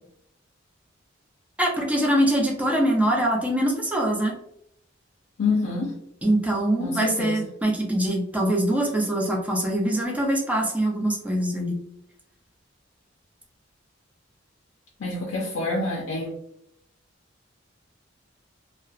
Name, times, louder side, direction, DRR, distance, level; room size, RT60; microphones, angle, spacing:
voice 1, 1.6-4.3 6.2-11.8, right 1 dB, 5° right, -1 dB, 0.5 m, -23 dB
voice 2, 5.4-5.9 6.8-7.4 15.0-16.3, left 3 dB, 65° left, -2 dB, 0.5 m, -27 dB
2.7 x 2.0 x 2.3 m, 0.74 s
head